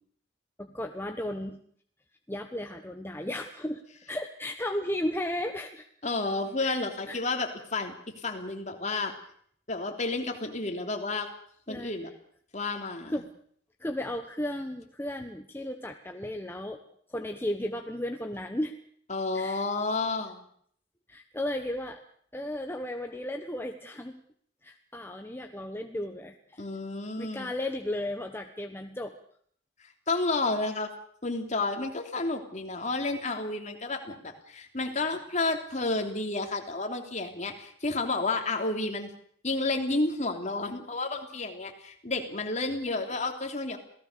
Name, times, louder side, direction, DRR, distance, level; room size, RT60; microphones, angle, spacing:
voice 1, 0.6-1.6 2.3-3.8 4.1-5.8 6.6-7.2 11.7-11.9 13.1-13.3 13.8-16.8 17.1-18.8 19.3-19.6 21.1-22.0 22.3-24.2 24.6-26.6 27.2-29.1, left 1 dB, 10° left, 4 dB, 1.1 m, -34 dB
voice 2, 6.0-9.1 9.7-11.3 11.7-12.1 12.5-13.2 19.1-20.4 26.6-27.5 30.1-30.9 31.2-39.1 39.4-43.8, left 3 dB, 40° left, 4 dB, 3.3 m, -31 dB
27.5 x 17.5 x 6.8 m, 0.63 s
head